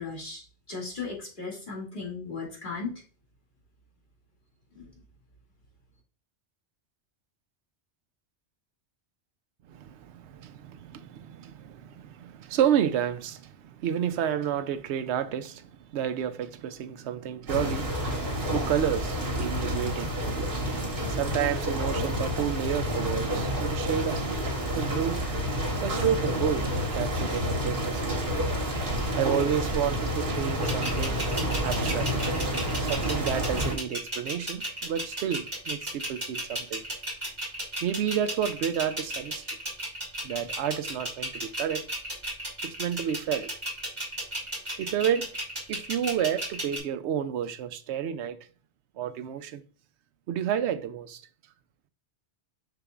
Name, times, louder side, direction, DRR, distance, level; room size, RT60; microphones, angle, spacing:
voice 1, 0.0-3.0 4.7-4.8, left 4 dB, 45° left, 2.3 m, -36 dB
voice 2, 9.7-20.4 21.1-24.2 24.7-25.2 25.8-28.2 29.2-31.2 31.6-32.1 32.8-36.8 37.8-39.5 40.2-41.8 42.6-43.5 44.8-45.3 45.7-48.4 49.0-49.6 50.3-51.2, right 9 dB, 80° right, 0.9 m, -30 dB
sound 1, 17.5-33.7, equal, 50° right, 1.7 m, -29 dB
sound 2, 30.6-46.8, right 1 dB, 25° right, 2.8 m, -34 dB
6.8 x 5.8 x 2.4 m
omnidirectional pair, 1.1 m